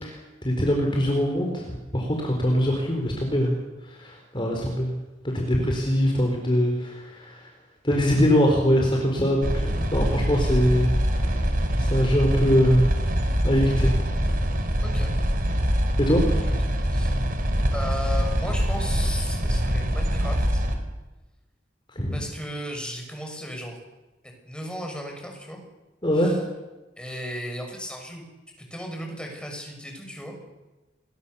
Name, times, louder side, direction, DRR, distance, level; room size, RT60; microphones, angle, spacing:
voice 1, 0.0-3.5 3.9-4.9 5.3-7.5 7.8-11.3 11.7-13.1 13.4-14.0 16.0-16.2 21.9-22.2 26.0-26.3, equal, 25° left, 1 dB, 4.2 m, -23 dB
sound 1, 9.4-20.8, equal, 50° right, 3.8 m, -24 dB
voice 2, 14.8-15.1 16.5-17.2 17.7-20.6 22.1-23.8 24.2-25.6 26.1-26.4 27.0-28.2 28.7-30.3, equal, 5° left, 2 dB, 6.5 m, -35 dB
29.0 x 22.0 x 7.0 m, 1.1 s
head